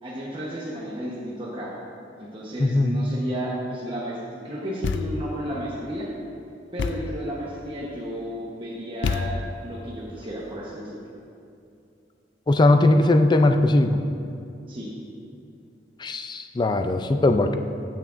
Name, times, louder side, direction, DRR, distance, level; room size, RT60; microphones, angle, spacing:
voice 1, 0.0-1.7 2.2-4.2 4.4-6.1 6.7-11.0 14.7-14.9, equal, 30° right, -6 dB, 1.0 m, -33 dB
voice 2, 2.6-3.0 12.5-14.0 16.0-17.5, left 2 dB, 25° left, 7 dB, 0.4 m, -19 dB
Thump thud, 4.8-5.4 6.8-7.2 9.0-9.7, left 4 dB, 85° left, 0.4 m, -28 dB
15.5 x 6.1 x 2.5 m, 2.6 s
head